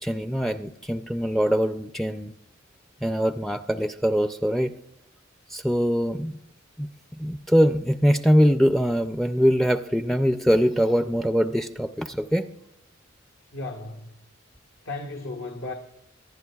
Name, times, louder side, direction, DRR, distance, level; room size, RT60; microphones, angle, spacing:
voice 1, 0.0-2.3 3.0-4.7 5.5-6.4 6.8-6.9 7.2-12.5, equal, ahead, 8 dB, 0.4 m, -22 dB
voice 2, 13.5-14.1 14.8-15.7, left 2 dB, 80° left, 1 dB, 1.4 m, -34 dB
24.5 x 11.0 x 2.3 m, 0.78 s
head